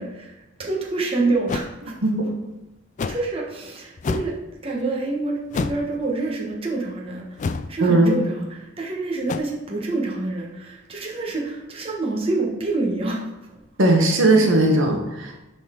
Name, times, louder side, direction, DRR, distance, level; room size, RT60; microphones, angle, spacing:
voice 1, 0.0-1.9 3.1-4.3 4.6-13.2 13.5-13.6, right 2 dB, 30° right, -2 dB, 1.2 m, -27 dB
sound 1, 1.5-1.7 3.0-3.3 4.0-4.4 5.5-5.9 7.4-7.7 9.3-9.4, left 4 dB, 40° left, 0.3 m, -27 dB
voice 2, 7.8-8.1 13.8-15.5, right 2 dB, 80° right, 2 dB, 1.2 m, -18 dB
10.5 x 4.1 x 3.7 m, 0.98 s
head